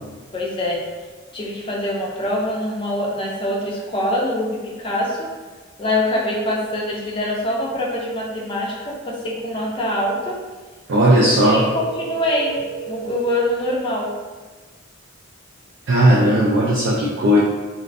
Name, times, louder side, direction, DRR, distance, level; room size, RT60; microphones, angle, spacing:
voice 1, 0.3-0.8 1.3-5.3 5.8-10.4 11.4-12.5 12.9-14.1, left 1 dB, 25° left, -2 dB, 0.4 m, -24 dB
voice 2, 10.9-11.7 15.9-17.4, equal, 60° right, -5 dB, 0.4 m, -16 dB
sound 1, 11.4-13.5, right 9 dB, 10° right, 0.7 m, -33 dB
2.5 x 2.1 x 2.5 m, 1.3 s
head